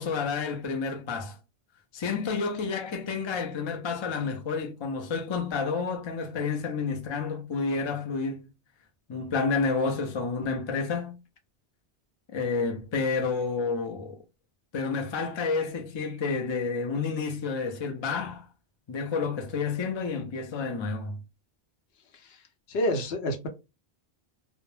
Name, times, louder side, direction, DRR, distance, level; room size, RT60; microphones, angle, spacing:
voice 1, 0.0-1.4 1.9-8.4 9.1-11.2 12.3-14.2 14.7-18.5 18.9-21.2, left 4 dB, 45° left, 0.3 m, -30 dB
voice 2, 22.7-23.5, left 1 dB, 70° left, 0.8 m, -27 dB
2.1 x 2.0 x 3.0 m
omnidirectional pair, 1.1 m